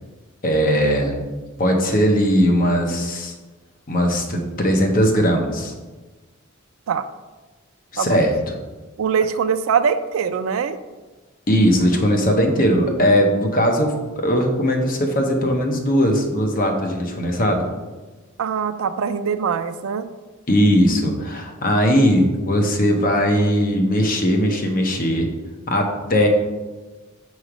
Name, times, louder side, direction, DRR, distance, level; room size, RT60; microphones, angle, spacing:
voice 1, 0.4-1.2 1.6-3.3 3.9-5.7 7.9-8.3 11.5-17.7 20.5-25.3 25.7-26.3, equal, 45° left, 2 dB, 0.8 m, -19 dB
voice 2, 9.0-10.8 18.4-20.0, right 6 dB, 80° right, 11 dB, 0.4 m, -22 dB
6.2 x 3.2 x 4.9 m, 1.2 s
head